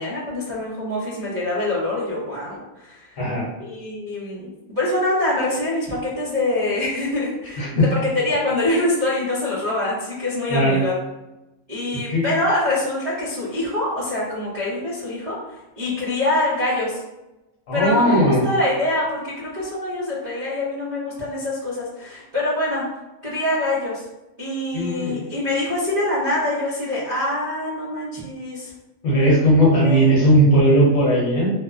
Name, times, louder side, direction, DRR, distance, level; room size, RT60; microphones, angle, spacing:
voice 1, 0.0-7.7 8.0-10.9 11.7-17.0 17.7-22.8 23.2-24.0 24.4-28.7 29.8-30.5, left 1 dB, 50° right, -8 dB, 0.4 m, -25 dB
voice 2, 17.7-18.4 24.7-25.3 29.0-31.5, right 1 dB, 65° left, -4 dB, 1.2 m, -17 dB
2.9 x 2.0 x 2.4 m, 1.0 s
omnidirectional pair, 1.5 m